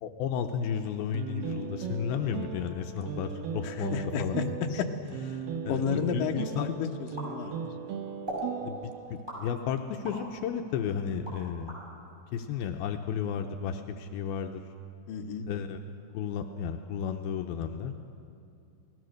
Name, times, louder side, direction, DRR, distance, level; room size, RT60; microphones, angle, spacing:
voice 1, 0.0-4.4 4.7-4.8 5.6-5.8 6.1-6.8 8.6-11.8 12.3-14.6 15.5-15.8 16.1-17.9, left 7 dB, 85° left, 4 dB, 2.2 m, -33 dB
sound 1, 1.1-9.2, right 8 dB, 85° right, 1.9 m, -38 dB
voice 2, 3.6-4.4 5.1-5.4 5.7-7.5 15.1-15.5, left 6 dB, 70° left, 3 dB, 2.2 m, -32 dB
sound 2, 7.2-7.8 8.3-8.5 9.3-10.3 10.7-11.8, right 1 dB, 10° right, 7.4 m, -39 dB
29.0 x 19.5 x 6.5 m, 2.6 s
omnidirectional pair, 5.3 m